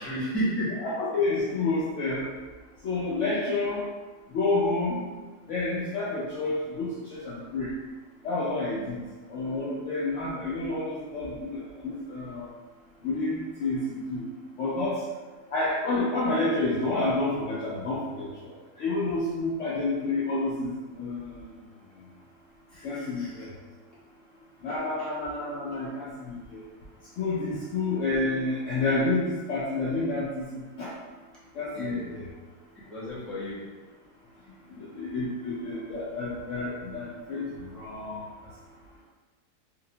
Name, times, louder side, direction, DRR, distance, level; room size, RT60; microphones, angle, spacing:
voice 1, 0.0-0.8 8.8-8.9 22.7-23.4 24.7-25.1 31.7-32.1 32.9-33.6, equal, ahead, -12 dB, 0.4 m, -33 dB
voice 2, 0.8-2.3 2.8-3.8 4.3-5.0 5.5-7.7 8.2-9.0 9.3-12.5 13.0-14.2 14.6-15.0 15.5-21.5 22.8-23.5 24.6-26.6 27.2-30.5 30.8-30.9 31.5-32.3 34.8-38.2, left 2 dB, 70° left, -7 dB, 0.7 m, -29 dB
2.8 x 2.0 x 2.7 m, 1.3 s
omnidirectional pair, 1.6 m